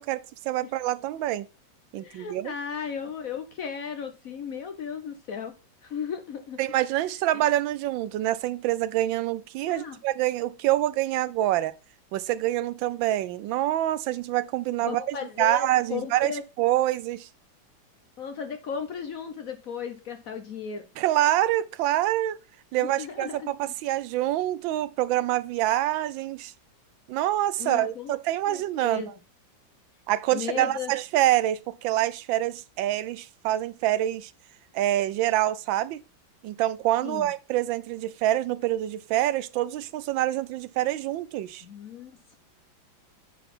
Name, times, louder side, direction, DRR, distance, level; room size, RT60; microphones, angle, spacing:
voice 1, 0.0-1.5 1.9-2.5 6.6-11.7 12.1-16.3 16.6-17.3 21.0-22.4 22.7-26.5 27.1-29.1 30.1-34.3 34.7-36.0 36.4-41.6, right 14 dB, 80° right, 1.3 m, -26 dB
voice 2, 1.9-5.5 5.8-6.6 7.3-7.4 9.7-10.0 14.8-16.4 18.2-20.9 22.8-23.7 27.6-28.1 28.5-29.1 30.3-30.9 37.0-37.3 41.6-42.3, left 7 dB, 60° left, 1.0 m, -35 dB
9.2 x 4.0 x 5.3 m
omnidirectional pair, 2.1 m